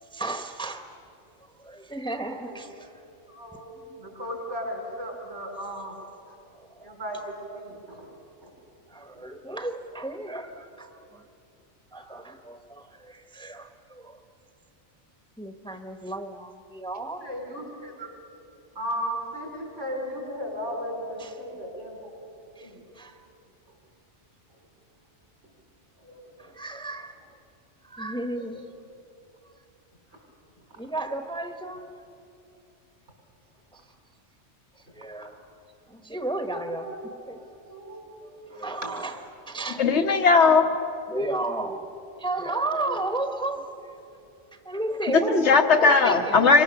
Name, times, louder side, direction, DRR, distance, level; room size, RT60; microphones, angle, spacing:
voice 1, 0.1-0.9 1.6-2.9 6.6-7.0 8.9-11.2 11.9-14.2 15.4-17.3 21.2-21.3 22.6-22.7 22.9-23.2 26.4-27.3 27.8-28.6 30.8-32.0 34.9-35.4 35.9-36.9 37.3-37.5 38.3-39.2 39.5-39.8 41.1-41.9 42.2-43.6 44.6-45.4 45.8-46.5, right 2 dB, 5° left, 6 dB, 1.1 m, -33 dB
voice 2, 3.3-6.0 6.3-6.4 6.8-8.1 8.4-8.5 17.2-18.1 18.8-22.1 22.6-22.8 24.6-24.7 26.0-26.3 28.5-28.6 30.1-30.2 36.5-37.0 37.6-38.1 38.5-38.9 42.9-43.0, equal, 80° right, 0 dB, 5.6 m, -36 dB
voice 3, 39.8-40.7 45.1-46.6, left 4 dB, 70° left, 6 dB, 1.6 m, -18 dB
28.0 x 23.5 x 7.0 m, 2.7 s
omnidirectional pair, 1.2 m